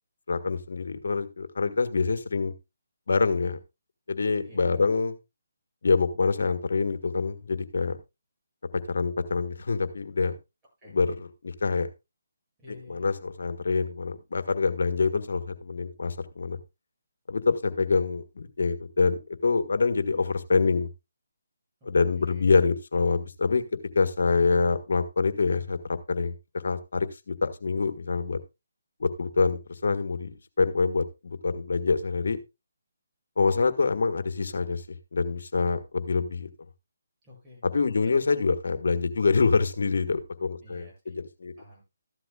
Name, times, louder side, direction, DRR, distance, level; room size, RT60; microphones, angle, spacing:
voice 1, 0.3-2.5 3.1-3.6 4.1-5.1 5.8-8.0 8.9-10.4 10.9-11.9 12.9-16.6 17.3-20.9 21.8-23.6 23.9-25.8 26.1-26.3 26.6-28.4 29.0-32.4 33.4-34.8 35.1-36.5 37.6-41.5, left 4 dB, 65° left, 10 dB, 1.5 m, -26 dB
voice 2, 12.6-13.1 21.8-22.4 37.2-37.6 38.0-38.1 40.6-41.2 41.6-41.8, left 1 dB, 15° right, -4 dB, 7.8 m, -50 dB
14.5 x 11.5 x 2.3 m, 0.24 s
figure-of-eight pair, 150°, 0 cm